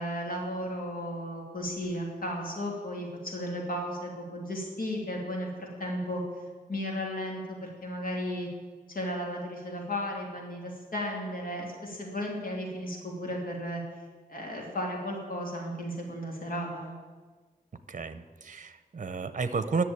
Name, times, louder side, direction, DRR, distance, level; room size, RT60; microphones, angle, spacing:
voice 1, 0.0-6.2 6.7-8.5 8.9-13.8 14.3-16.9, equal, 70° left, -1 dB, 2.8 m, -34 dB
voice 2, 17.9-19.8, right 4 dB, 55° right, 11 dB, 0.8 m, -32 dB
11.5 x 7.0 x 8.7 m, 1.4 s
wide cardioid pair, 100°, 15 cm